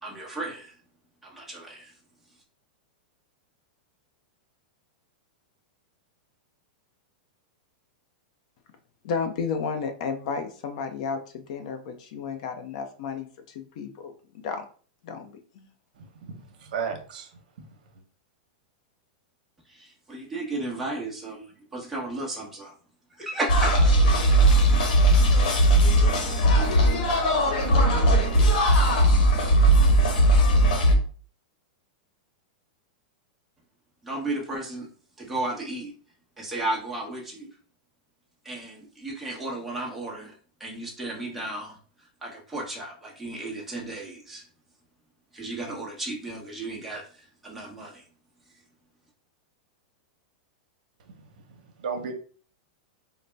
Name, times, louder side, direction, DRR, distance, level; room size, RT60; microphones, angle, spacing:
voice 1, 0.0-0.7 1.2-1.9 20.1-21.4 21.7-22.7 23.2-23.8 34.0-34.9 35.2-35.9 36.4-37.5 38.4-40.3 40.6-41.8 42.2-44.4 45.3-48.0, right 2 dB, 5° right, -4 dB, 0.9 m, -34 dB
voice 2, 9.0-14.6 15.0-15.7, left 5 dB, 50° left, 7 dB, 0.6 m, -33 dB
voice 3, 16.0-17.3 51.5-52.1, right 6 dB, 70° right, 5 dB, 0.8 m, -34 dB
sound 1, 23.5-30.9, right 1 dB, 75° left, 1.2 m, -19 dB
4.0 x 2.1 x 3.3 m, 0.42 s
supercardioid pair, 165°, 5 cm